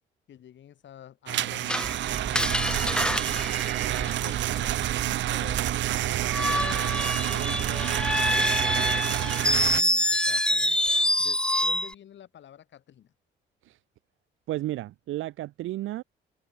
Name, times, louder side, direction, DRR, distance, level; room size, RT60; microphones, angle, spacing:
voice 1, 0.3-3.5 3.8-13.1, left 10 dB, 65° left, 6.1 m, -49 dB
sound 1, 1.3-9.8, right 14 dB, 70° right, 0.5 m, -28 dB
Screech, 1.7-4.6 6.2-11.9, left 1 dB, 5° left, 0.6 m, -26 dB
sound 2, 1.8-8.3, right 5 dB, 40° right, 4.4 m, -40 dB
voice 2, 14.5-16.0, right 15 dB, 90° right, 3.3 m, -32 dB
cardioid pair, 90°, 20 cm